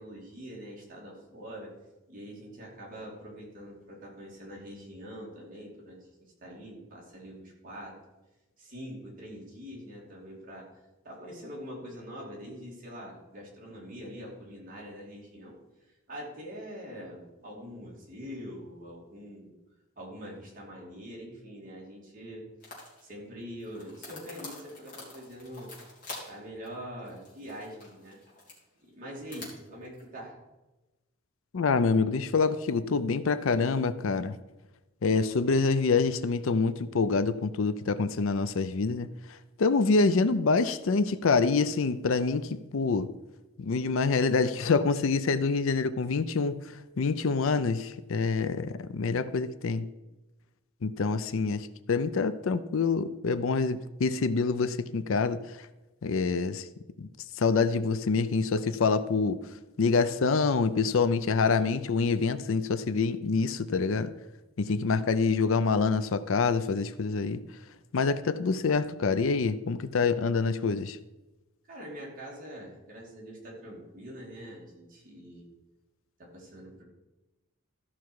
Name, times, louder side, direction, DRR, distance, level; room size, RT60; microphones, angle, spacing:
voice 1, 0.0-1.7 2.1-7.9 8.6-10.6 11.0-15.5 16.1-19.5 20.0-22.4 23.0-25.7 26.2-28.2 28.8-30.3 71.7-75.5 76.2-76.8, equal, 40° right, -3 dB, 2.9 m, -44 dB
sound 1, 22.6-23.0 23.6-26.4 26.6-26.7 27.1-28.6 29.1-30.0, left 2 dB, 40° left, 3.0 m, -46 dB
voice 2, 31.5-34.4 35.0-43.1 43.6-49.9 50.8-55.7 56.0-56.7 57.0-57.1 57.4-59.4 59.8-64.1 64.6-67.4 67.9-71.0, left 4 dB, 70° left, 13 dB, 0.5 m, -26 dB
13.5 x 5.9 x 4.7 m, 1.1 s
head